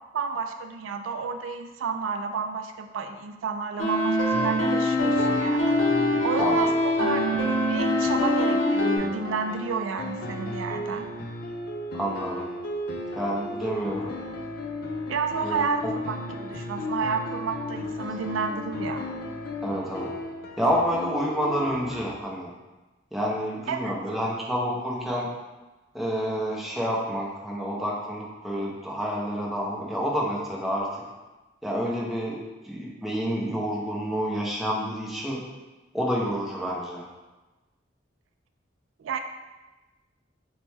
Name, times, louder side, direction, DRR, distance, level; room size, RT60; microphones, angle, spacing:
voice 1, 0.1-5.8 6.2-7.3 7.7-11.1 15.1-19.1 23.7-23.9 39.0-39.2, right 5 dB, 80° right, 6 dB, 0.3 m, -31 dB
sound 1, 3.8-9.0, left 1 dB, 90° left, 0.7 m, -23 dB
sound 2, 4.3-22.1, left 1 dB, 50° left, 0.4 m, -35 dB
voice 2, 11.9-12.5 13.1-14.1 15.4-15.9 19.6-20.1 20.6-22.5 23.1-25.3 25.9-30.9 31.6-32.4 32.6-35.4 35.9-37.1, equal, ahead, -4 dB, 0.6 m, -28 dB
5.9 x 2.2 x 3.2 m, 1.2 s
head